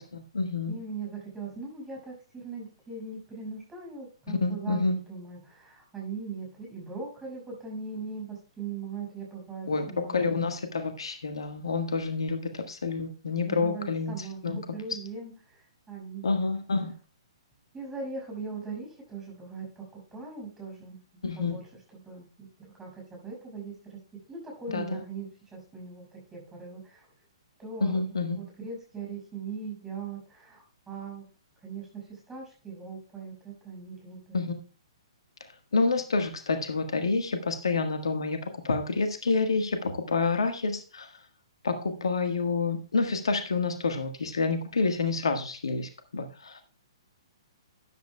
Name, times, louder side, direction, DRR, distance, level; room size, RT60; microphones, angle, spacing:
voice 1, 0.0-0.8 4.3-5.0 9.7-14.6 16.2-16.9 21.2-21.6 24.7-25.0 27.8-28.4 34.3-34.5 35.7-41.1 41.6-46.6, left 4 dB, 65° left, 7 dB, 1.5 m, -28 dB
voice 2, 0.7-10.2 13.3-16.5 17.7-21.0 21.4-21.6 22.0-24.0 24.3-27.1 27.6-31.3 31.6-34.4, right 4 dB, 10° right, -1 dB, 6.1 m, -40 dB
13.0 x 10.5 x 2.3 m, 0.36 s
figure-of-eight pair, 120°, 3 cm